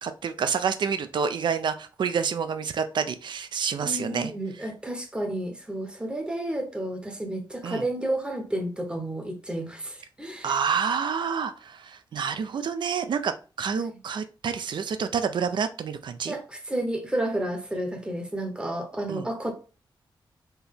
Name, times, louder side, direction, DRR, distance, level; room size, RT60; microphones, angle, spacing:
voice 1, 0.0-4.3 7.6-7.9 10.4-16.4 19.1-19.3, right 6 dB, 60° right, 10 dB, 0.4 m, -28 dB
voice 2, 3.8-10.5 13.7-14.0 16.3-19.5, right 1 dB, 10° right, 4 dB, 0.8 m, -31 dB
4.4 x 2.8 x 3.4 m, 0.35 s
wide cardioid pair, 175°, 9 cm